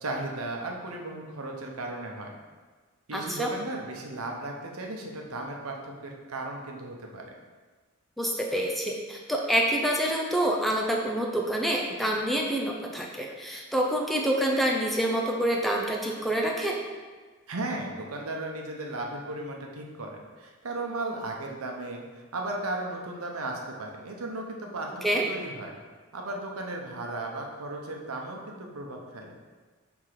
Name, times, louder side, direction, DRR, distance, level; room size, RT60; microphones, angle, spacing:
voice 1, 0.0-2.3 3.1-7.3 17.5-25.7 26.1-29.3, right 2 dB, 85° right, 1 dB, 0.9 m, -36 dB
voice 2, 3.1-3.5 8.2-16.8 25.0-25.3, right 1 dB, ahead, -1 dB, 0.5 m, -27 dB
5.9 x 3.6 x 4.9 m, 1.4 s
head